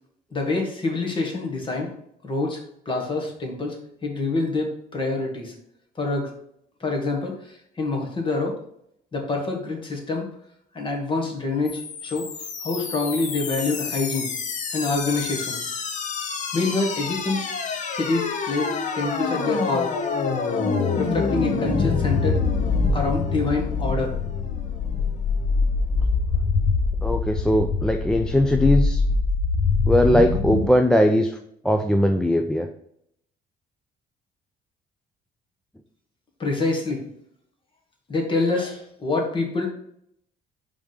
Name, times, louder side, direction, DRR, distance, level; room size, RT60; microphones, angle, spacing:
voice 1, 0.3-1.9 2.2-5.5 6.0-6.3 6.8-8.5 9.1-10.3 10.7-12.3 12.6-14.3 14.7-15.6 16.5-17.4 17.9-19.9 20.9-24.1 36.4-37.0 38.1-39.7, left 3 dB, 30° left, 1 dB, 1.8 m, -26 dB
sound 1, 11.7-30.7, left 4 dB, 45° left, 0.9 m, -25 dB
voice 2, 27.0-29.0 29.9-31.4 31.6-32.7, equal, 5° left, 5 dB, 0.4 m, -20 dB
5.0 x 3.6 x 5.6 m, 0.71 s
cardioid pair, 110°, 17 cm